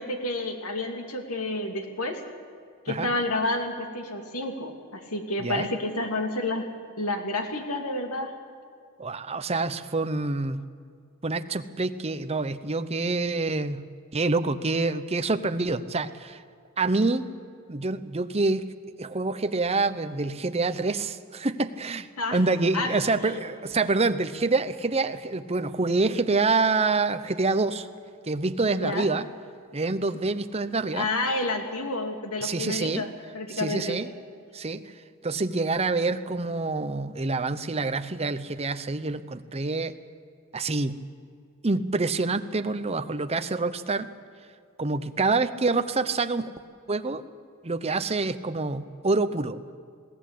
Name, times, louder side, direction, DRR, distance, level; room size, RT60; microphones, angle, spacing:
voice 1, 0.0-2.2 2.8-6.7 7.0-8.3 22.2-22.4 22.7-22.9 28.8-29.1 30.9-33.1 33.3-34.0, left 2 dB, 80° left, 4 dB, 2.6 m, -29 dB
voice 2, 9.0-10.6 11.2-13.8 14.1-16.4 16.8-17.3 17.7-18.7 19.0-27.9 28.2-29.2 29.7-31.1 32.4-33.0 33.5-34.1 34.5-34.8 35.2-39.9 40.5-41.0 41.6-44.1 44.8-46.5 46.9-47.2 47.6-49.6, right 3 dB, 30° right, 10 dB, 0.8 m, -26 dB
21.0 x 17.0 x 8.4 m, 2.3 s
head